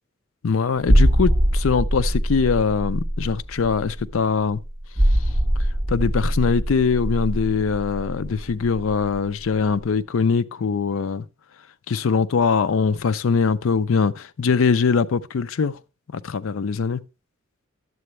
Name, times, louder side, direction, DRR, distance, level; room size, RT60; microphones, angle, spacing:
voice 1, 0.4-4.6 5.1-5.2 5.9-11.3 11.9-15.8 16.1-17.0, left 5 dB, 70° left, 0.5 m, -22 dB
sound 1, 0.8-9.3 9.5-9.7, equal, 15° right, 0.6 m, -22 dB
11.0 x 7.7 x 3.1 m
head